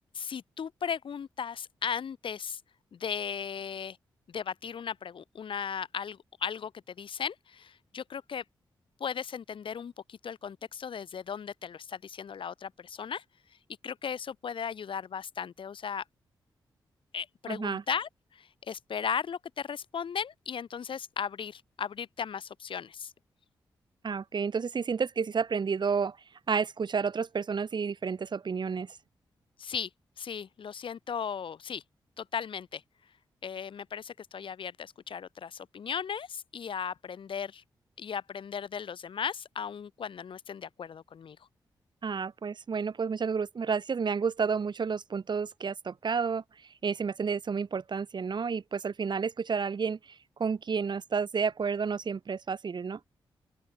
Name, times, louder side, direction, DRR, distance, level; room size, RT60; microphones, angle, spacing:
voice 1, 0.1-2.6 2.9-4.0 4.3-8.4 9.0-13.2 13.8-16.0 17.1-23.1 29.6-29.9 30.2-31.8 32.2-32.8 33.4-37.6 38.0-41.4, left 7 dB, 70° left, 2.4 m, -36 dB
voice 2, 17.5-17.8 24.0-26.2 26.5-29.0 42.0-53.0, right 5 dB, 55° right, 1.9 m, -31 dB
open air
cardioid pair, 55°, 9 cm